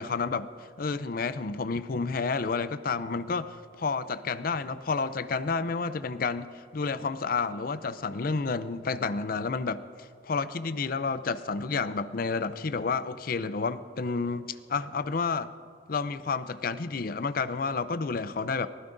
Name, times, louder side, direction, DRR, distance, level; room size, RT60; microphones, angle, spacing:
voice 1, 0.0-15.5 15.9-18.7, left 4 dB, 50° left, 14 dB, 0.5 m, -30 dB
23.5 x 16.0 x 2.6 m, 2.5 s
head